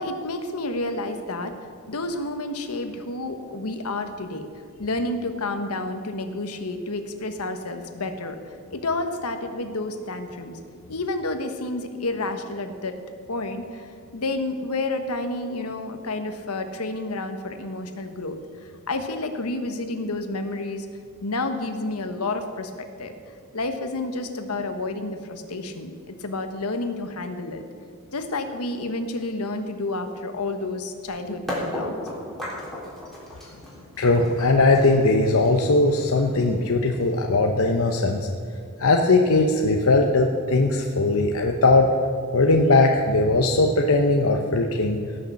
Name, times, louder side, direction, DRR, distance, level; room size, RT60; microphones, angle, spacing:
voice 1, 0.0-1.6 1.9-4.5 4.8-8.4 8.7-10.6 10.9-13.0 13.3-18.4 18.9-20.9 21.2-23.2 23.5-27.6 28.1-32.0, left 2 dB, 85° left, 7 dB, 1.3 m, -30 dB
sound 1, 31.5-37.3, equal, ahead, 3.7 m, -35 dB
voice 2, 34.0-38.3 38.8-41.9 42.3-45.0, left 2 dB, 65° left, 2 dB, 0.9 m, -19 dB
17.5 x 6.7 x 7.4 m, 2.2 s
head